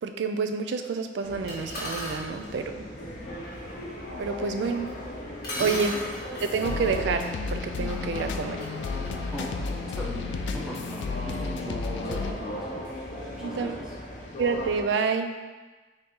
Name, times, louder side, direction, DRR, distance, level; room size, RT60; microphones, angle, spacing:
voice 1, 0.0-2.8 4.2-4.9 5.6-6.0 6.4-7.2 7.5-8.6 13.4-13.7 14.4-15.3, right 5 dB, 85° right, 7 dB, 0.3 m, -28 dB
sound 1, 1.2-14.8, left 1 dB, 45° left, 0.7 m, -38 dB
sound 2, 1.5-2.3 4.9-5.0 5.4-10.2, left 1 dB, 65° left, 1.4 m, -39 dB
voice 2, 3.0-3.5 5.5-5.8 9.3-9.7 9.9-12.8 13.3-14.0, equal, 5° right, -6 dB, 0.7 m, -39 dB
sound 3, 6.4-12.3, left 4 dB, 90° left, 0.3 m, -33 dB
4.0 x 2.6 x 3.7 m, 1.3 s
head